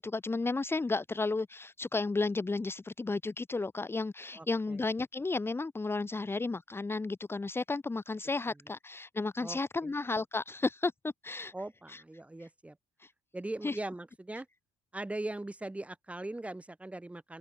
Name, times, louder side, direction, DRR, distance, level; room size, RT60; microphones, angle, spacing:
voice 1, 0.0-11.5 11.9-12.0 13.0-13.1 13.6-13.8, left 3 dB, 15° left, 2.1 m, -33 dB
voice 2, 4.3-4.8 9.4-9.9 11.5-12.8 13.3-14.5 14.9-17.4, right 2 dB, 10° right, 4.0 m, -40 dB
cardioid pair, 145°, 16 cm